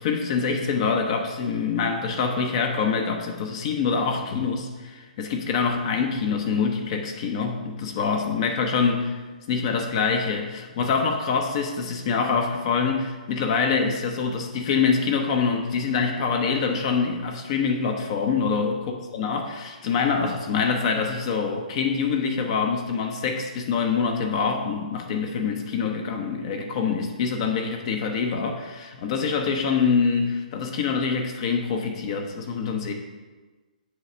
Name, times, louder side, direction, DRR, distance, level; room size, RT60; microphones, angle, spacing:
voice 1, 0.0-9.2 9.5-18.8 19.1-32.9, left 5 dB, 40° left, 4 dB, 0.8 m, -25 dB
8.0 x 3.2 x 5.7 m, 1.3 s
figure-of-eight pair, 135°, 5 cm